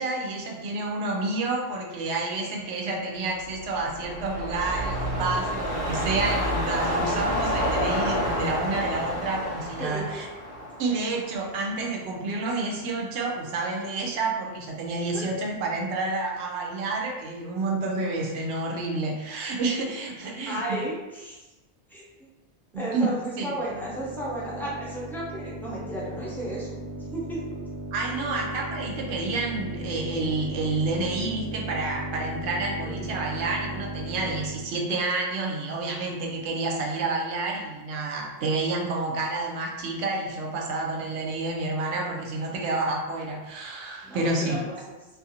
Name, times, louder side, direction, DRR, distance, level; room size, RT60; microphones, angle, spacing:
voice 1, 0.0-10.3 10.8-20.8 22.7-23.5 27.9-44.6, right 3 dB, 90° right, 0 dB, 0.9 m, -29 dB
sound 1, 3.5-11.9 12.3-12.4, equal, 60° right, 1.0 m, -29 dB
voice 2, 9.8-10.2 15.1-15.2 20.5-21.4 21.9-22.3 22.7-26.7 27.0-27.4 32.8-33.2 44.0-45.0, right 1 dB, ahead, -8 dB, 0.5 m, -34 dB
sound 2, 23.6-34.7, right 1 dB, 40° left, 0.7 m, -36 dB
2.5 x 2.4 x 2.7 m, 1.1 s
omnidirectional pair, 1.1 m